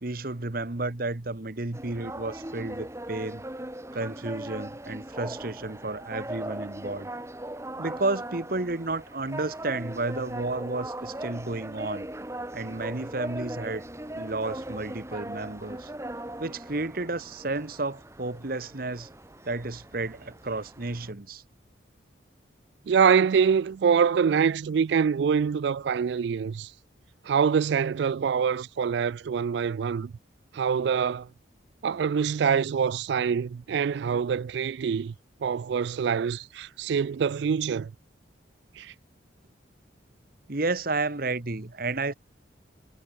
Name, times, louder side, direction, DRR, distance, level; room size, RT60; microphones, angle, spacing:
voice 1, 0.0-3.4 3.9-7.1 7.8-12.1 12.5-13.8 14.1-15.9 16.4-19.1 19.4-21.4 40.5-42.1, right 2 dB, 50° right, 1.2 m, -32 dB
sound 1, 1.7-21.1, right 1 dB, 15° right, 1.5 m, -39 dB
voice 2, 22.9-26.7 27.3-30.1 30.5-31.3 31.8-35.1 35.4-37.9 38.8-38.9, right 6 dB, 65° right, 0.3 m, -25 dB
head